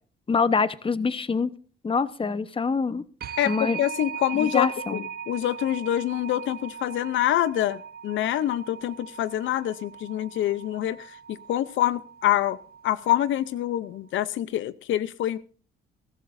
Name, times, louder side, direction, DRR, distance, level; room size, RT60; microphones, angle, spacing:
voice 1, 0.3-1.5 1.8-3.0 3.4-3.8 4.3-5.0, left 5 dB, 25° left, 1.0 m, -25 dB
sound 1, 3.2-13.8, right 7 dB, 50° right, 0.8 m, -40 dB
voice 2, 3.4-12.6 12.8-15.4, left 12 dB, 75° left, 0.7 m, -26 dB
22.0 x 13.0 x 2.6 m
cardioid pair, 90°, 20 cm